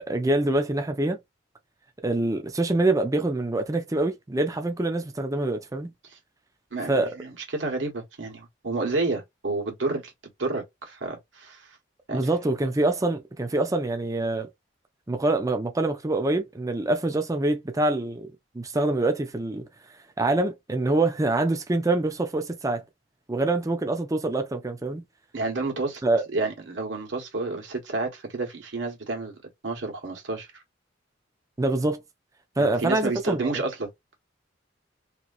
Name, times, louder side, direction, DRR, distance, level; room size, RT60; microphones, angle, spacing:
voice 1, 0.1-1.2 2.0-5.9 6.9-7.1 12.1-14.5 15.1-18.3 18.5-19.6 20.2-22.8 23.3-25.0 26.0-26.2 31.6-32.0 32.6-33.6, right 2 dB, 20° right, 0.5 m, -25 dB
voice 2, 6.7-11.8 12.1-12.2 25.3-26.0 26.3-29.3 29.6-30.6 32.6-33.9, right 3 dB, 80° right, 1.4 m, -30 dB
2.9 x 2.8 x 2.5 m
head